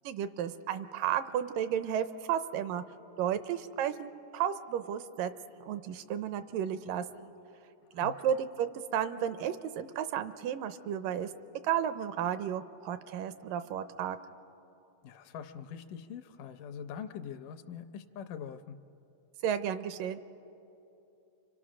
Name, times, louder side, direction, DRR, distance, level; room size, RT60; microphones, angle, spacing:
voice 1, 0.0-2.8 3.2-5.3 5.6-7.3 7.9-11.3 11.6-14.2 19.4-20.2, right 9 dB, 80° right, 11 dB, 2.3 m, -33 dB
voice 2, 15.0-18.8, left 7 dB, 75° left, 10 dB, 2.2 m, -43 dB
29.5 x 25.5 x 6.2 m, 2.9 s
omnidirectional pair, 3.9 m